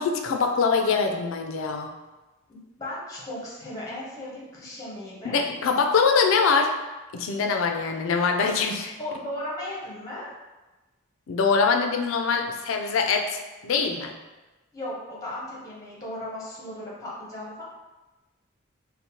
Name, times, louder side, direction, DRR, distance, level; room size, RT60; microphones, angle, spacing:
voice 1, 0.0-1.9 5.2-6.7 7.1-8.9 11.3-14.1, left 5 dB, 65° left, 3 dB, 0.3 m, -23 dB
voice 2, 2.5-5.4 9.0-10.3 14.7-17.6, left 1 dB, 15° left, -6 dB, 0.6 m, -36 dB
2.8 x 2.1 x 2.9 m, 1.1 s
head